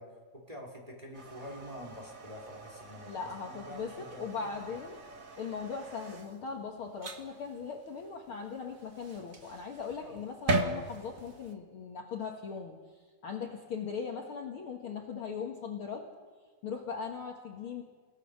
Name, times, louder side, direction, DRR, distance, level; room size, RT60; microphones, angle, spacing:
voice 1, 0.0-4.8 10.0-10.2, equal, 10° right, -1 dB, 3.7 m, -47 dB
sound 1, 1.1-11.5, right 2 dB, 35° right, 1.4 m, -40 dB
voice 2, 3.1-5.0 5.4-12.8 13.2-16.1 16.6-17.8, left 5 dB, 50° left, 1 dB, 2.0 m, -39 dB
29.5 x 17.5 x 6.6 m, 1.5 s
omnidirectional pair, 3.6 m